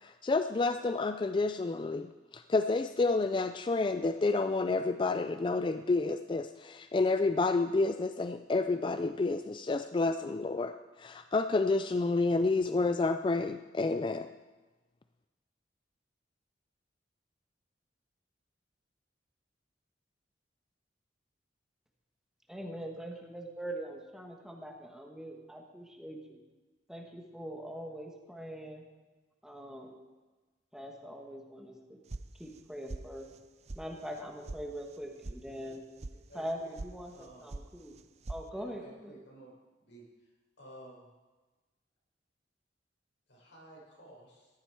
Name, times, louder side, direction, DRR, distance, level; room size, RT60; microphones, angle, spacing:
voice 1, 0.0-14.3, left 3 dB, 25° left, 9 dB, 0.3 m, -29 dB
voice 2, 22.5-26.4 26.9-28.8 29.4-30.0 30.7-32.0 32.4-33.3 33.7-35.8 36.3-38.0 38.3-39.1, equal, 5° right, 1 dB, 1.3 m, -42 dB
sound 1, 32.1-32.6 32.9-33.4 33.7-33.8 34.1-34.6 34.9-35.4 35.7-36.1 36.5-36.9 37.2-37.7 37.9-38.4, right 2 dB, 35° right, 0.5 m, -41 dB
voice 3, 36.3-36.7 37.1-37.5 38.5-39.5 39.8-40.1 40.6-41.1 43.3-44.5, right 1 dB, 85° left, -4 dB, 5.5 m, -53 dB
14.0 x 11.0 x 4.7 m, 1.2 s
head